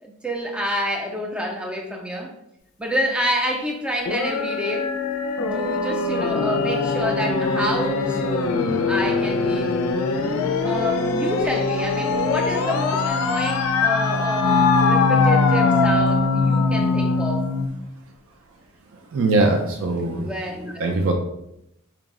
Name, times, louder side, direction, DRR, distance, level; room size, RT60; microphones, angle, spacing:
voice 1, 0.0-2.3 2.8-4.9 5.5-8.6 8.9-9.7 10.6-17.5 20.2-21.0, equal, 5° right, 1 dB, 0.3 m, -28 dB
sound 1, 4.1-17.7, left 4 dB, 90° left, 0.4 m, -21 dB
voice 2, 19.1-20.3 20.8-21.1, right 2 dB, 70° right, 3 dB, 0.4 m, -21 dB
4.6 x 2.0 x 3.5 m, 0.81 s
head